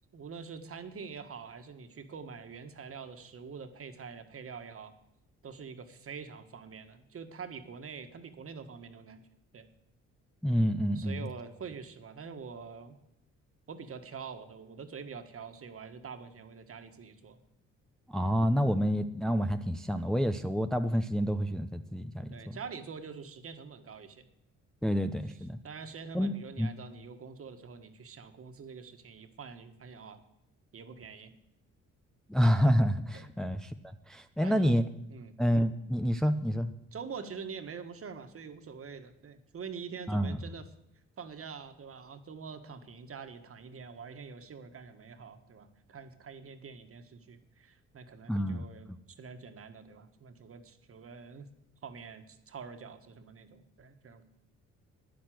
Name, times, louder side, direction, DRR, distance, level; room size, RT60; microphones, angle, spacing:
voice 1, 0.1-4.9 5.4-9.3 9.5-9.7 10.9-12.9 13.7-17.4 22.3-24.3 25.3-30.2 30.7-31.3 33.1-33.3 34.4-34.8 35.1-35.3 36.9-40.7 41.2-51.5 51.8-54.2, right 5 dB, 50° right, 8 dB, 1.7 m, -45 dB
voice 2, 10.4-11.3 18.1-22.6 24.8-25.6 26.1-26.7 32.3-33.7 34.1-34.8 35.4-36.7 40.1-40.4 48.3-48.6, equal, ahead, 7 dB, 0.7 m, -28 dB
11.5 x 10.0 x 7.8 m, 0.82 s
cardioid pair, 90°, 30 cm